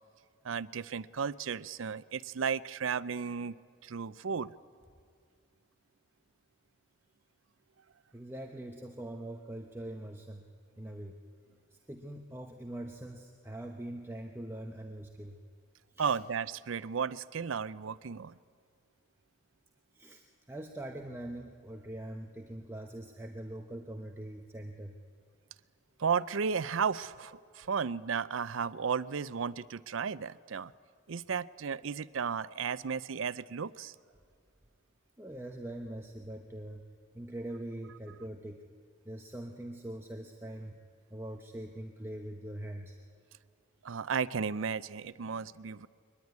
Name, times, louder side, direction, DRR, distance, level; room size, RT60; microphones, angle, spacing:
voice 1, 0.4-3.5 3.8-4.5 16.0-18.4 26.0-30.7 31.1-33.9 43.8-45.9, right 6 dB, 80° right, 17 dB, 0.5 m, -34 dB
voice 2, 8.1-10.4 10.8-11.2 11.7-15.4 15.9-16.2 19.9-25.0 35.2-36.8 37.1-38.6 39.0-40.8 41.1-43.0, right 1 dB, 10° right, 2 dB, 0.9 m, -43 dB
23.0 x 20.0 x 9.5 m, 2.2 s
head